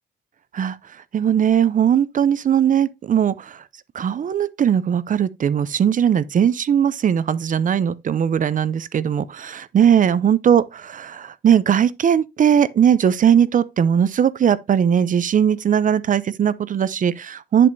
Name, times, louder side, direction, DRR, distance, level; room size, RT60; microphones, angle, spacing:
voice 1, 1.1-3.6 3.9-17.7, right 8 dB, 40° right, 0.5 m, -19 dB
7.7 x 7.5 x 2.6 m
cardioid pair, 90°, 20 cm